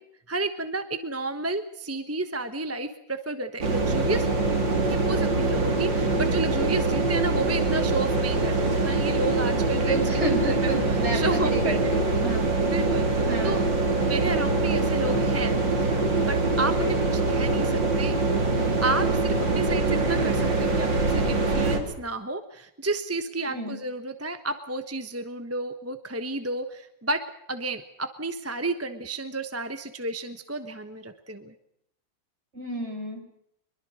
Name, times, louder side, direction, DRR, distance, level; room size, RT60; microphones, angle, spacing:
voice 1, 0.3-4.3 4.9-10.0 10.6-12.3 12.7-13.6 14.0-18.2 18.8-27.2 27.5-31.5, right 2 dB, 10° right, 8 dB, 0.8 m, -32 dB
sound 1, 3.6-21.8, right 3 dB, 75° right, 3.9 m, -24 dB
voice 2, 9.7-12.5 13.3-13.7 16.8-16.9 23.5-23.7 32.5-33.2, right 1 dB, 35° right, 3 dB, 5.5 m, -30 dB
24.0 x 22.5 x 6.3 m, 0.75 s
omnidirectional pair, 2.0 m